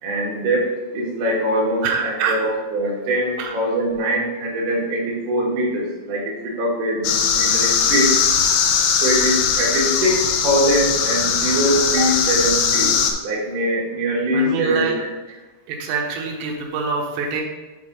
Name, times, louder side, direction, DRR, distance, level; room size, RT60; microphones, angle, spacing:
voice 1, 0.0-8.2 9.0-12.9 13.2-15.1, right 1 dB, 60° right, -3 dB, 2.5 m, -22 dB
voice 2, 1.8-2.4 3.4-3.5 8.8-8.9 14.3-14.9 15.3-15.4 15.7-17.4, right 5 dB, 85° right, 1 dB, 3.1 m, -25 dB
sound 1, 7.0-13.1, left 6 dB, 80° left, 2.5 m, -19 dB
7.4 x 3.5 x 5.3 m, 1.2 s
omnidirectional pair, 5.0 m